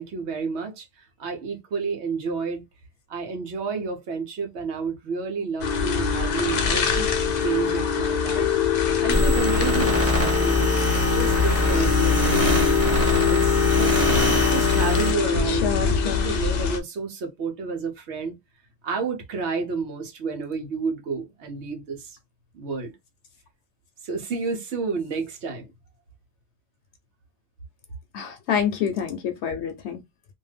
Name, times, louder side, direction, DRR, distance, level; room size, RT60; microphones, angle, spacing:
voice 1, 0.0-2.6 3.1-7.1 7.4-8.5 9.0-12.7 13.3-14.0 14.4-18.3 18.8-22.2 22.5-22.9 24.0-25.7, right 5 dB, 75° right, 1.0 m, -30 dB
sound 1, 5.6-16.8, left 7 dB, 55° left, 0.5 m, -23 dB
sound 2, 9.1-15.1, left 1 dB, 15° right, 0.9 m, -23 dB
voice 2, 15.5-16.3 28.1-30.0, left 7 dB, 75° left, 0.8 m, -28 dB
2.6 x 2.2 x 3.2 m
omnidirectional pair, 1.2 m